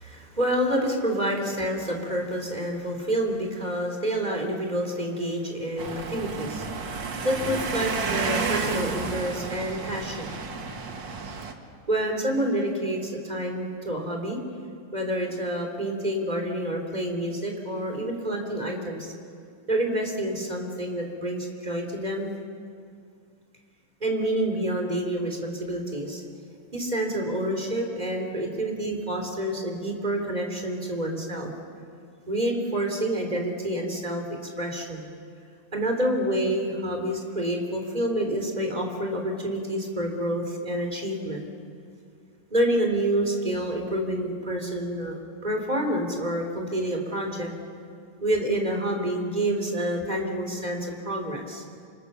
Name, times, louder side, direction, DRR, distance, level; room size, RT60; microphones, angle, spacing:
voice 1, 0.0-10.3 11.9-14.4 14.9-19.1 19.7-22.3 24.0-26.2 26.7-31.5 32.3-34.2 34.6-35.0 35.7-41.4 42.5-47.5 48.2-51.6, right 1 dB, 10° right, 2 dB, 3.2 m, -28 dB
sound 1, 5.8-11.5, right 5 dB, 55° right, 1.3 m, -31 dB
28.5 x 25.5 x 7.0 m, 2.3 s
omnidirectional pair, 4.5 m